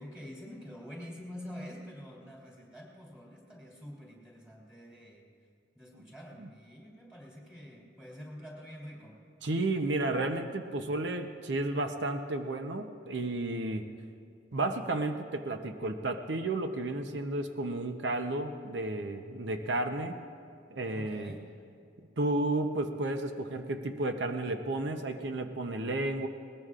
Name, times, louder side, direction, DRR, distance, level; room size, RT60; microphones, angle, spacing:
voice 1, 0.0-5.2 5.7-9.2 20.9-21.5, equal, 5° right, -3 dB, 3.2 m, -47 dB
voice 2, 9.4-13.9 14.5-20.2 20.7-21.4 22.2-26.3, right 2 dB, 85° right, 6 dB, 0.8 m, -32 dB
20.5 x 19.5 x 2.5 m, 2.5 s
head